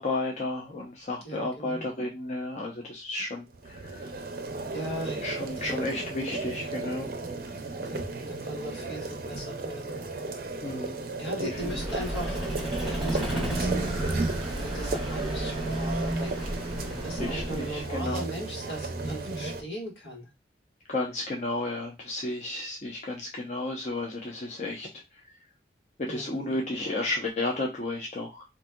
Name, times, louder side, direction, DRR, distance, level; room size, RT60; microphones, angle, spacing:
voice 1, 0.0-4.1 5.2-7.1 10.6-11.0 11.4-11.5 17.2-18.2 20.9-24.9 26.1-28.4, left 2 dB, 40° left, -1 dB, 0.6 m, -32 dB
voice 2, 1.2-1.9 4.7-5.8 7.9-8.0 8.3-10.0 11.2-12.4 12.8-13.9 14.6-16.5 17.0-20.3 26.1-26.4, right 1 dB, 85° left, -2 dB, 1.5 m, -38 dB
sound 1, 3.5-19.6, right 3 dB, 55° right, 0.5 m, -35 dB
Vehicle, 11.5-18.0, right 1 dB, ahead, 1.1 m, -32 dB
4.0 x 2.6 x 2.2 m, 0.23 s
head